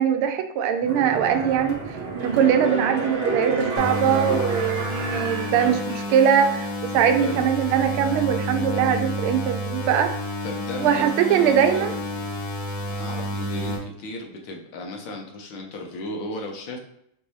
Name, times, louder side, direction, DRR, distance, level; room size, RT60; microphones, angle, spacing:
voice 1, 0.0-6.7 6.9-10.1 10.8-11.9, right 8 dB, 90° right, 7 dB, 1.5 m, -21 dB
sound 1, 0.8-6.4 6.7-6.8, right 3 dB, 65° right, 0.6 m, -30 dB
sound 2, 3.8-13.8, equal, 55° left, 1.3 m, -30 dB
voice 2, 10.4-12.3 12.9-16.8, left 2 dB, 70° left, 1 dB, 1.5 m, -35 dB
5.2 x 2.7 x 3.0 m, 0.73 s
omnidirectional pair, 2.3 m